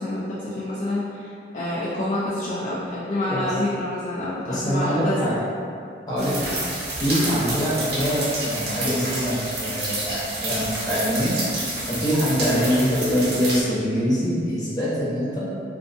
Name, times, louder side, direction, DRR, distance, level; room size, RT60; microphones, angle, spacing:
voice 1, 0.0-5.3 6.2-6.5, left 1 dB, 40° left, -9 dB, 0.3 m, -28 dB
voice 2, 4.4-5.5 6.1-6.5 7.0-11.3 11.8-15.4, equal, 20° left, -10 dB, 0.7 m, -24 dB
sound 1, 6.2-13.6, right 2 dB, 60° right, 0.6 m, -29 dB
2.5 x 2.5 x 2.5 m, 2.4 s
head